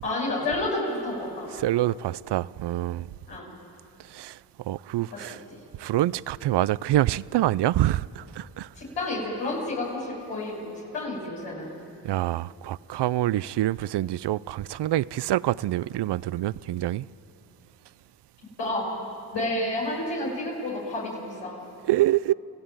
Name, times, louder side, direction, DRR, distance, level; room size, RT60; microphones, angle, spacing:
voice 1, 0.0-1.5 3.3-3.5 5.1-5.2 8.7-11.7 18.6-18.9 19.3-21.5, left 2 dB, 90° left, 6.5 m, -30 dB
voice 2, 1.5-3.1 4.1-4.4 4.6-5.4 5.8-8.7 12.0-17.1 21.8-22.3, right 14 dB, 75° right, 0.5 m, -26 dB
28.5 x 16.0 x 9.0 m
cardioid pair, 50°, 42 cm